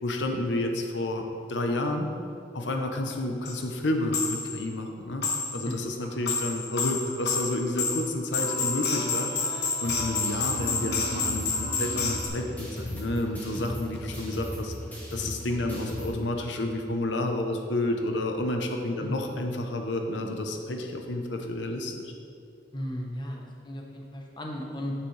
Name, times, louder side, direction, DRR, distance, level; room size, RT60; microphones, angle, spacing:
voice 1, 0.0-2.1 2.5-5.2 5.5-14.7 15.1-22.1, left 1 dB, 90° left, 4 dB, 0.8 m, -30 dB
sound 1, 3.1-3.2 3.5-3.6 4.1-4.6 5.2-5.7 6.0-12.3, left 4 dB, 65° left, 1.3 m, -29 dB
sound 2, 9.8-16.1, equal, 10° left, 1.6 m, -38 dB
voice 2, 19.0-19.3 22.7-24.9, equal, 25° left, 0 dB, 0.8 m, -36 dB
8.9 x 8.1 x 3.3 m, 2.5 s
head